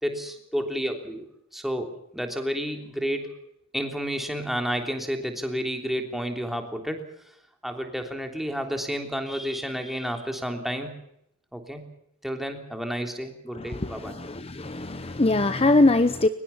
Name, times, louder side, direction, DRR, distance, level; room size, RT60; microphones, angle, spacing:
voice 1, 0.0-1.3 1.5-3.3 3.7-7.0 7.6-10.9 11.5-11.9 12.2-14.2, equal, ahead, 4 dB, 3.3 m, -31 dB
voice 2, 13.5-16.3, left 2 dB, 30° left, 12 dB, 0.9 m, -22 dB
23.0 x 20.5 x 7.1 m, 0.77 s
head